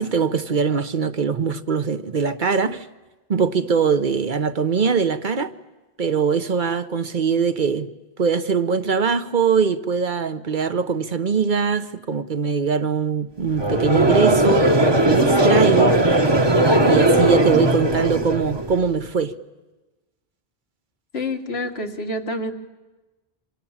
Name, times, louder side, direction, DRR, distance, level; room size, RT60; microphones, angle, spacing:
voice 1, 0.0-2.9 3.3-5.5 6.0-7.9 8.2-14.7 15.0-16.0 16.8-19.3, right 6 dB, 50° right, 1.1 m, -22 dB
Conversation / Crowd, 13.5-18.8, right 1 dB, 25° right, 1.2 m, -18 dB
voice 2, 21.1-22.5, left 1 dB, 85° left, 2.0 m, -27 dB
28.0 x 25.5 x 7.4 m
omnidirectional pair, 1.0 m